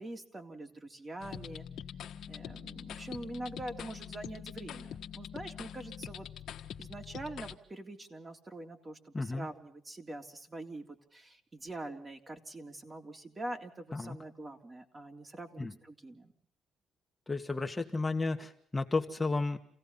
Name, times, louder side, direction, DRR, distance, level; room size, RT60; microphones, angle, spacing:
voice 1, 0.0-1.7 2.3-6.3 6.8-10.8 11.1-16.3, right 1 dB, 25° right, 4 dB, 3.4 m, -44 dB
sound 1, 1.2-7.6, left 9 dB, 70° left, 1.5 m, -44 dB
voice 2, 9.1-9.5 13.9-14.2 15.6-15.7 17.3-19.6, left 3 dB, 20° left, 5 dB, 1.7 m, -33 dB
28.5 x 17.5 x 5.7 m, 0.63 s
cardioid pair, 90°, 0 cm